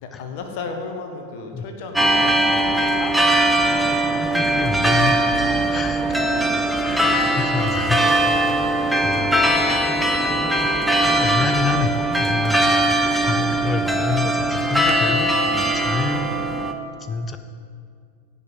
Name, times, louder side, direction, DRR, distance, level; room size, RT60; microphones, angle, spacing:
voice 1, 0.0-2.7 4.0-4.6, left 4 dB, 45° left, 4 dB, 1.6 m, -34 dB
sound 1, 2.0-16.7, right 1 dB, 5° right, 0.9 m, -20 dB
voice 2, 4.3-5.2 5.7-6.4 6.8-8.2 9.0-9.5 10.2-10.3 11.0-13.0 13.2-16.7 17.0-17.4, left 4 dB, 20° left, 9 dB, 0.7 m, -27 dB
16.5 x 5.8 x 7.6 m, 2.3 s
figure-of-eight pair, 90°, 0 cm